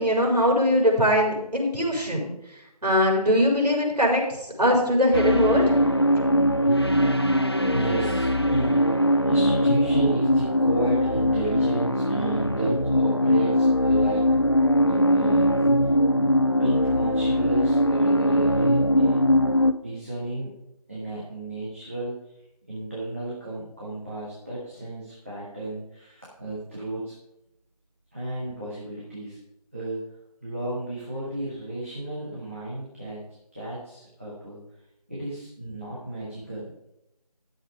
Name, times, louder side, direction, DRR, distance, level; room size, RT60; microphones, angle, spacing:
voice 1, 0.0-2.3 2.8-5.6 6.2-6.3, equal, 75° right, -1 dB, 4.7 m, -21 dB
sound 1, 5.1-19.7, equal, 40° left, 0.5 m, -21 dB
voice 2, 6.3-6.7 7.6-8.8 9.3-15.4 16.1-19.2 19.8-20.5 20.9-22.3 22.7-27.1 28.1-29.4 29.7-30.1 30.4-33.2 33.5-34.6 35.1-36.7, right 1 dB, 20° right, -8 dB, 1.7 m, -33 dB
11.5 x 7.3 x 5.0 m, 0.87 s
figure-of-eight pair, 175°, 20 cm